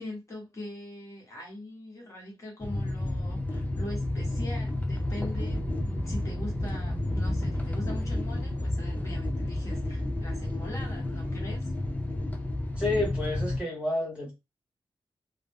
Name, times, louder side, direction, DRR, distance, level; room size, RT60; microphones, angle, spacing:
voice 1, 0.0-11.7, left 1 dB, 35° left, 1.1 m, -42 dB
sound 1, 2.6-13.6, left 1 dB, 15° left, 0.4 m, -31 dB
voice 2, 12.8-14.3, left 2 dB, 10° right, 1.0 m, -29 dB
2.6 x 2.0 x 3.4 m
wide cardioid pair, 175°, 10 cm